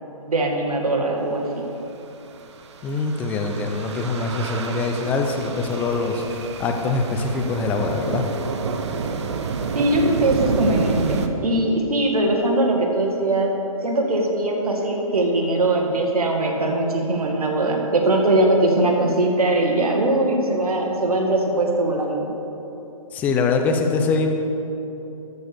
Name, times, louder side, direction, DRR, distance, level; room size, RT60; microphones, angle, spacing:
voice 1, 0.3-1.7 9.7-13.5 13.8-22.3, right 2 dB, 85° right, 1 dB, 1.9 m, -21 dB
sound 1, 2.4-11.3, right 5 dB, 50° right, 0.8 m, -29 dB
voice 2, 2.8-8.3 23.1-24.3, left 4 dB, 10° left, 4 dB, 0.4 m, -23 dB
12.5 x 4.7 x 6.6 m, 3.0 s
hypercardioid pair, 150°, 19 cm